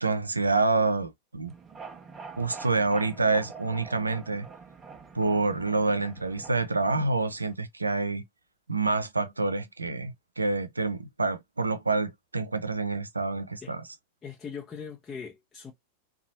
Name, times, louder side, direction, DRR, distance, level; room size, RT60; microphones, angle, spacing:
voice 1, 0.0-1.5 2.4-4.5 5.1-8.2 8.7-13.8, right 3 dB, 80° right, 0.6 m, -27 dB
sound 1, 1.5-7.6, right 5 dB, 20° right, 0.7 m, -46 dB
voice 2, 14.2-15.7, left 6 dB, 20° left, 0.8 m, -40 dB
3.8 x 2.4 x 2.8 m
figure-of-eight pair, 90°, 0 cm